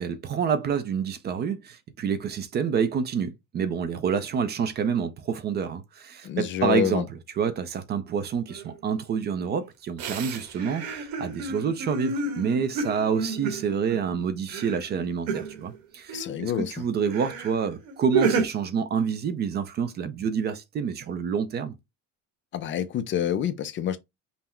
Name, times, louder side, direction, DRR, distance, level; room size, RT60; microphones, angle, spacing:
voice 1, 0.0-21.7, right 6 dB, 30° right, 0.4 m, -28 dB
voice 2, 6.2-7.0 16.1-16.7 22.5-24.0, left 10 dB, 40° left, 0.4 m, -27 dB
sound 1, 8.5-8.7 10.0-14.1 14.5-15.8 16.1-16.5 17.0-17.5 17.8-18.4, right 4 dB, 85° right, 1.3 m, -30 dB
5.6 x 2.0 x 4.3 m
cardioid pair, 180°, 33 cm